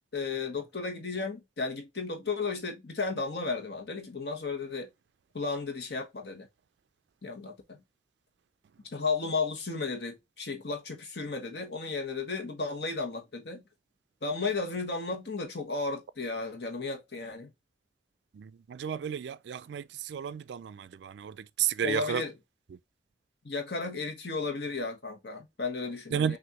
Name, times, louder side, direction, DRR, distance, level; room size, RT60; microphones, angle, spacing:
voice 1, 0.1-4.9 5.3-6.5 7.2-7.8 8.9-13.6 14.2-17.5 21.8-22.4 23.4-26.4, left 4 dB, 65° left, 1.3 m, -34 dB
voice 2, 18.4-21.3 21.6-22.2 26.1-26.4, right 8 dB, 75° right, 0.3 m, -32 dB
6.1 x 2.6 x 2.9 m
head